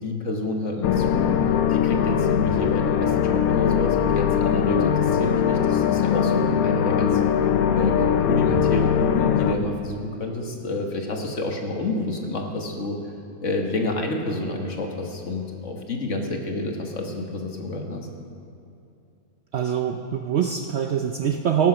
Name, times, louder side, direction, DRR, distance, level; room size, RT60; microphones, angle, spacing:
voice 1, 0.0-7.2 7.7-13.0 13.4-18.1, left 2 dB, 55° left, 2 dB, 1.6 m, -29 dB
sound 1, 0.8-9.6, left 8 dB, 75° left, 1.1 m, -21 dB
voice 2, 19.5-21.7, right 8 dB, 60° right, 4 dB, 0.7 m, -24 dB
18.0 x 7.1 x 5.9 m, 2.6 s
omnidirectional pair, 1.6 m